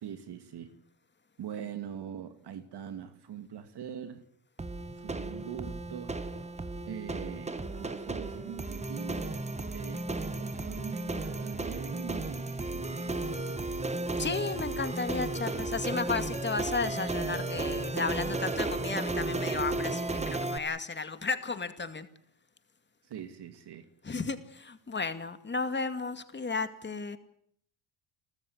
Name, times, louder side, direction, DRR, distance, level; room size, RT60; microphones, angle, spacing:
voice 1, 0.0-0.8 1.4-4.2 5.0-6.2 6.9-9.5 9.7-13.7 23.1-23.9, right 9 dB, 60° right, 2.3 m, -43 dB
sound 1, 4.6-20.6, right 2 dB, 15° right, 1.8 m, -34 dB
voice 2, 14.2-22.1 24.0-27.2, left 4 dB, 25° left, 2.3 m, -34 dB
30.0 x 14.0 x 9.6 m
cardioid pair, 100°, 46 cm